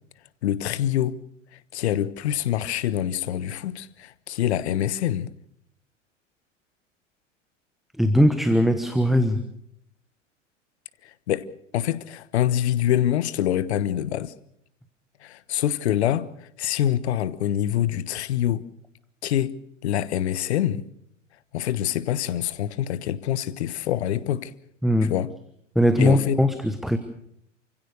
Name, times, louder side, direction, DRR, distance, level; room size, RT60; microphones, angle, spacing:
voice 1, 0.4-1.2 1.7-5.3 11.3-11.5 11.7-14.3 15.2-16.3 16.6-18.6 19.2-19.6 19.8-20.8 21.5-24.5 25.0-25.3 26.0-26.4, left 11 dB, 60° left, 1.2 m, -25 dB
voice 2, 8.0-9.4 24.8-25.1 25.7-27.0, equal, ahead, 1.1 m, -20 dB
28.5 x 16.0 x 6.6 m
figure-of-eight pair, 90°, 37 cm